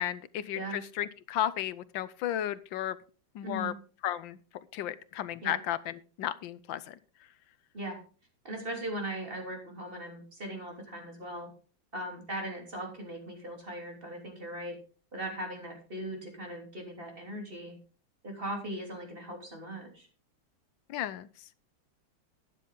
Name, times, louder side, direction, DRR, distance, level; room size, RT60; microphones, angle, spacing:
voice 1, 0.0-3.0 3.3-3.7 4.0-4.4 4.7-7.0 20.9-21.5, left 11 dB, 75° left, 16 dB, 1.4 m, -34 dB
voice 2, 8.4-11.5 11.9-14.8 15.1-17.8 18.2-20.1, right 1 dB, 25° right, 1 dB, 3.3 m, -39 dB
12.0 x 10.0 x 3.8 m, 0.37 s
omnidirectional pair, 2.2 m